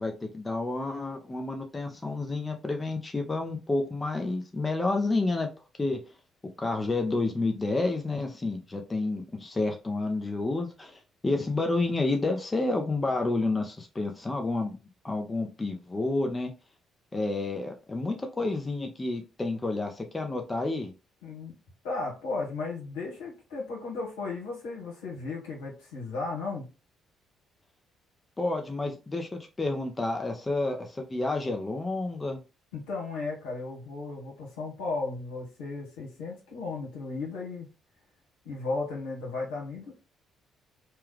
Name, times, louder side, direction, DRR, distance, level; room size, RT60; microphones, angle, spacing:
voice 1, 0.0-5.5 5.8-6.0 6.6-16.5 17.1-20.9 28.4-32.4, left 2 dB, 25° left, 4 dB, 0.7 m, -30 dB
voice 2, 21.2-21.5 21.8-26.7 32.7-37.7 38.4-39.9, left 3 dB, 80° left, -3 dB, 1.3 m, -35 dB
3.0 x 2.3 x 3.3 m, 0.29 s
hypercardioid pair, 50°, 0 cm